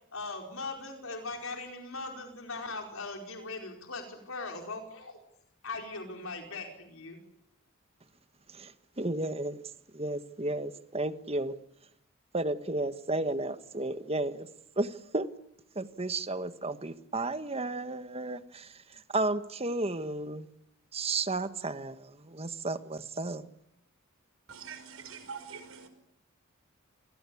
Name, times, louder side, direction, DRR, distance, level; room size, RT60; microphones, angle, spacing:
voice 1, 0.1-5.2 5.6-7.2, left 3 dB, 70° left, 4.8 m, -40 dB
voice 2, 9.0-9.6 9.9-11.5 12.3-14.5 14.8-15.3 15.7-18.7 19.1-20.5 20.9-23.4, right 2 dB, 30° right, 1.4 m, -33 dB
voice 3, 24.5-25.9, right 6 dB, 70° right, 5.6 m, -44 dB
28.0 x 21.5 x 8.5 m
head